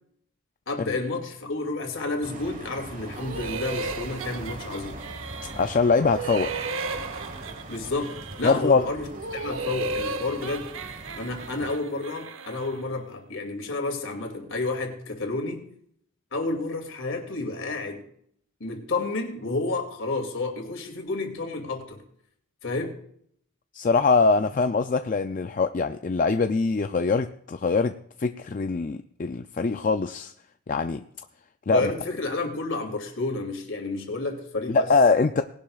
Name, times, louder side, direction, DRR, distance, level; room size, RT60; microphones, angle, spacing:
voice 1, 0.7-5.0 7.7-10.7 11.1-15.6 16.3-18.1 18.6-22.0 22.6-22.9 31.7-34.9, left 3 dB, 65° left, 3 dB, 2.6 m, -30 dB
sound 1, 2.2-11.8, right 2 dB, 35° right, 1.3 m, -41 dB
sound 2, 3.1-5.8 6.1-8.7 9.1-12.9, right 3 dB, 70° right, 0.8 m, -35 dB
voice 2, 5.6-6.5 8.4-8.9 23.7-27.9 28.2-30.3 30.7-31.0 31.7-31.9 34.7-35.4, left 4 dB, 40° left, 8 dB, 0.4 m, -23 dB
19.5 x 11.5 x 2.4 m, 0.67 s
head